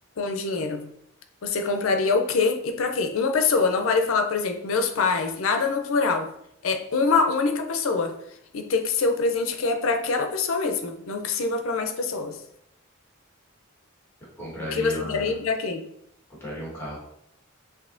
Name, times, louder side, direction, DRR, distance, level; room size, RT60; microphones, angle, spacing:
voice 1, 0.2-0.9 1.4-6.3 6.6-8.2 8.5-12.4 14.7-15.8, left 4 dB, 80° left, 6 dB, 0.5 m, -24 dB
voice 2, 14.4-15.3 16.4-17.0, equal, 10° left, -6 dB, 1.4 m, -34 dB
5.4 x 2.8 x 2.5 m, 0.73 s
head